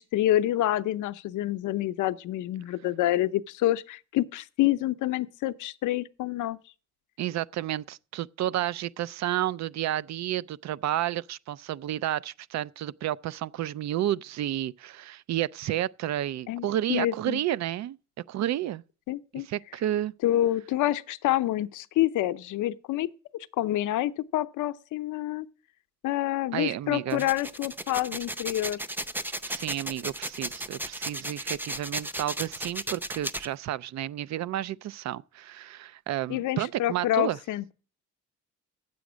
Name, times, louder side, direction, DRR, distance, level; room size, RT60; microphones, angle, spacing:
voice 1, 0.0-6.6 16.5-17.4 19.1-19.5 20.2-23.1 23.6-25.5 26.0-28.8 36.3-37.7, left 14 dB, 80° left, 0.7 m, -27 dB
voice 2, 7.2-18.0 18.3-18.8 19.5-20.1 26.5-27.3 29.5-37.4, right 12 dB, 65° right, 0.5 m, -31 dB
sound 1, 27.1-33.5, right 1 dB, 5° right, 0.6 m, -35 dB
9.4 x 7.7 x 6.1 m
cardioid pair, 90°, 30 cm